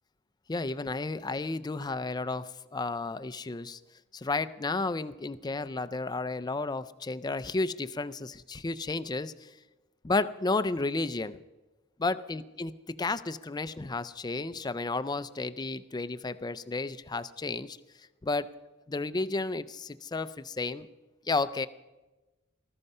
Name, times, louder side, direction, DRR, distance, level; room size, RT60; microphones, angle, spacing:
voice 1, 0.5-3.8 4.1-9.5 10.0-11.4 12.0-17.8 18.2-18.5 18.9-20.9 21.3-21.7, left 3 dB, 20° left, 14 dB, 0.4 m, -32 dB
19.5 x 13.5 x 5.5 m, 1.1 s
head